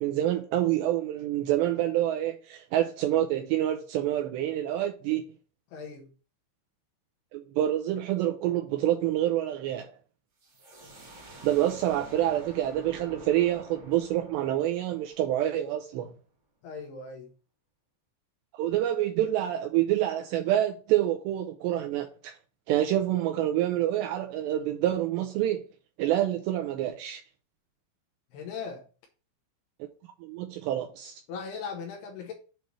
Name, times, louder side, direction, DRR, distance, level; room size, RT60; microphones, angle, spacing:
voice 1, 0.0-5.2 7.3-9.9 11.4-16.1 18.5-22.3 22.7-25.6 26.0-27.2 30.2-31.2, right 12 dB, 80° right, 2.5 m, -27 dB
voice 2, 5.7-6.1 16.6-17.3 28.3-28.8 31.3-32.3, left 5 dB, 75° left, 2.6 m, -38 dB
sound 1, 10.4-15.9, right 2 dB, 50° right, 1.3 m, -49 dB
7.7 x 3.3 x 5.3 m
omnidirectional pair, 5.5 m